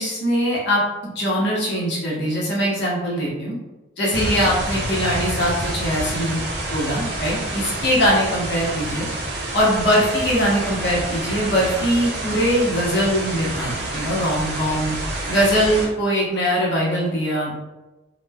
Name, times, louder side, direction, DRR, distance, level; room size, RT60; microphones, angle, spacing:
voice 1, 0.0-3.6 4.0-6.4 6.7-9.1 9.5-14.9 15.3-17.5, equal, 55° left, -5 dB, 0.8 m, -21 dB
sound 1, 4.1-15.9, right 1 dB, 55° right, 0.5 m, -28 dB
3.0 x 2.1 x 2.2 m, 1.1 s
head